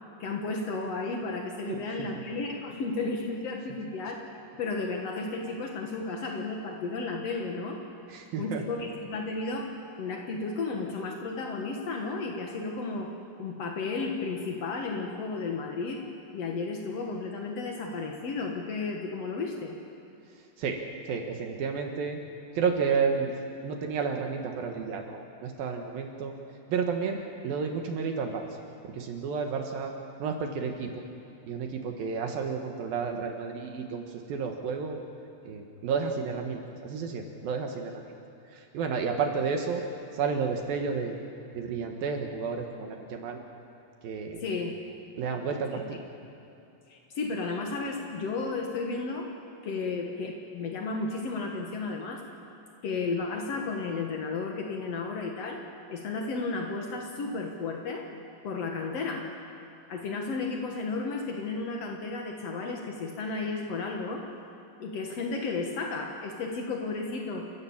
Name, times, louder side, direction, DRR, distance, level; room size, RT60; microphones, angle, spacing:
voice 1, 0.2-4.2 4.6-7.8 8.4-13.1 13.4-16.0 16.3-19.7 44.4-44.8 46.9-49.3 49.6-52.2 52.8-55.6 55.9-58.0 58.4-59.3 59.9-64.2 64.8-67.4, left 3 dB, 85° left, 1 dB, 1.4 m, -33 dB
voice 2, 1.7-2.1 8.1-8.6 20.6-20.8 21.1-22.2 22.5-23.3 23.6-26.3 26.7-28.5 28.9-29.9 30.2-31.0 31.5-35.0 35.5-38.0 38.5-39.8 40.1-41.2 41.5-43.4 44.0-44.4 45.2-46.0, right 5 dB, 65° right, 3 dB, 2.6 m, -31 dB
29.0 x 15.5 x 7.2 m, 2.7 s
omnidirectional pair, 5.4 m